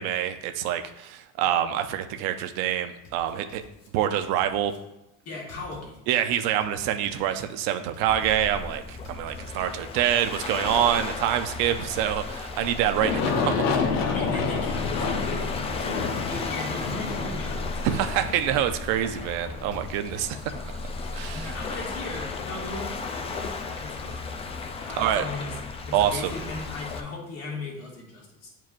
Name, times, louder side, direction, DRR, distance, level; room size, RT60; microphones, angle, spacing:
voice 1, 0.0-3.6 3.9-4.7 6.1-13.8 17.8-20.5 21.1-21.5 25.0-25.2 25.9-26.3, right 10 dB, 75° right, 7 dB, 0.7 m, -26 dB
sound 1, 3.0-4.8 5.5-6.2 6.6-8.3 9.0-9.8 10.1-11.9 12.6-13.3 13.7-15.4 16.1-16.9 17.3-18.9 19.7-20.4 20.8-22.3, left 3 dB, 85° left, 1.9 m, -51 dB
voice 2, 5.3-6.0 13.9-18.0 21.3-23.5 23.8-24.2 24.8-28.5, left 2 dB, 45° left, -2 dB, 1.9 m, -37 dB
Waves surf, 8.1-27.0, left 4 dB, 20° left, 0.3 m, -35 dB
Aircraft, 13.0-19.7, left 5 dB, 70° left, 0.9 m, -29 dB
9.0 x 4.6 x 2.5 m, 0.89 s
cardioid pair, 160°, 34 cm